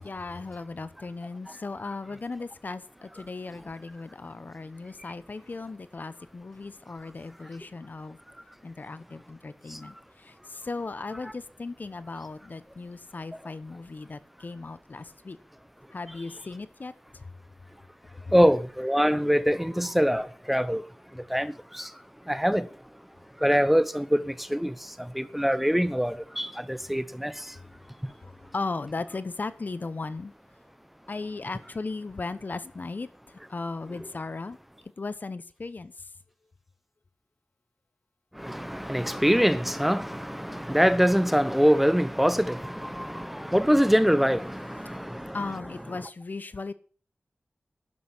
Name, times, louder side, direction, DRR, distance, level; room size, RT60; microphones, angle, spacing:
voice 1, 0.0-8.2 8.6-15.4 15.9-17.3 18.3-18.4 27.6-27.7 28.2-30.3 31.1-34.6 35.0-36.1 45.3-46.7, left 3 dB, 50° left, 1.1 m, -37 dB
voice 2, 18.3-20.8 21.3-21.9 22.3-22.7 23.4-24.7 25.1-27.4 38.4-45.4, equal, 5° right, 0.8 m, -24 dB
11.5 x 11.5 x 7.3 m
wide cardioid pair, 75°, 4 cm